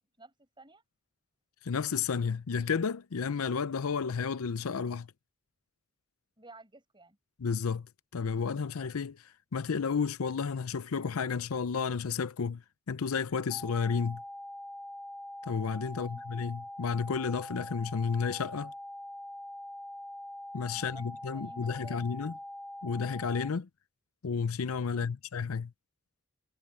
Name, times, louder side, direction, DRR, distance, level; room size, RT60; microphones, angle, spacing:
voice 1, 0.2-0.8 6.4-7.2 15.9-16.2 20.7-22.1 24.9-25.1, right 2 dB, 20° right, 6.9 m, -54 dB
voice 2, 1.6-5.1 7.4-7.9 8.1-9.2 9.5-12.6 12.9-14.2 15.5-18.7 20.5-22.3 22.8-23.7 24.2-25.7, left 5 dB, 90° left, 0.6 m, -32 dB
sound 1, 13.5-23.5, left 1 dB, 5° left, 1.2 m, -43 dB
head